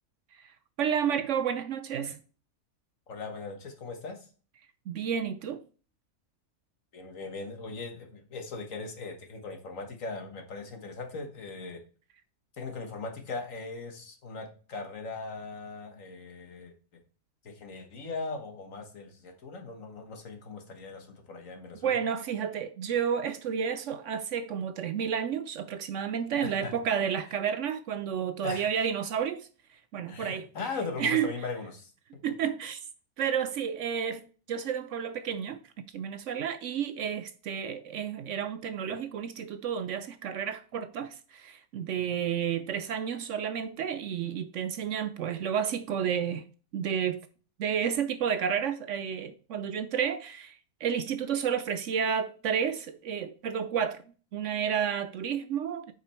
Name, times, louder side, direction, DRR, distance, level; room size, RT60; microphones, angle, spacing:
voice 1, 0.3-2.2 4.9-5.6 21.8-30.5 31.0-31.3 32.2-32.8 33.2-46.4 46.7-47.2 47.6-54.0 54.3-55.9, right 8 dB, 65° right, 0.8 m, -31 dB
voice 2, 3.1-4.3 6.9-11.8 12.5-16.7 17.4-22.0 26.4-26.7 28.4-28.7 30.1-31.9 42.1-42.2, left 4 dB, 65° left, 1.7 m, -39 dB
8.5 x 5.0 x 4.3 m
omnidirectional pair, 1.5 m